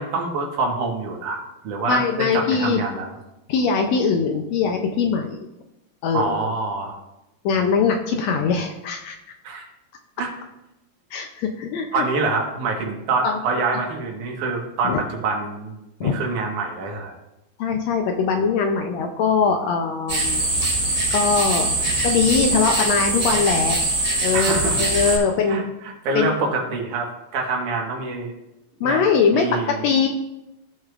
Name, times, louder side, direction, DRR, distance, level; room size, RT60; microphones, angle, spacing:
voice 1, 0.0-1.4 1.6-3.1 6.1-7.0 9.4-9.6 10.2-10.3 11.9-15.7 16.0-17.1 24.3-25.2 25.5-28.3 28.8-29.0 29.3-29.8, right 3 dB, 80° right, 1 dB, 2.8 m, -26 dB
voice 2, 1.9-2.8 3.5-5.4 6.0-6.4 7.4-9.2 11.1-12.0 13.2-13.4 14.8-15.0 16.0-16.2 17.6-20.4 21.1-21.7 22.0-23.8 24.2-25.6 26.1-26.3 28.8-30.1, left 5 dB, 75° left, 4 dB, 1.6 m, -21 dB
sound 1, 20.1-25.2, right 1 dB, 40° right, 4.0 m, -22 dB
15.5 x 6.3 x 2.4 m, 0.93 s
omnidirectional pair, 3.6 m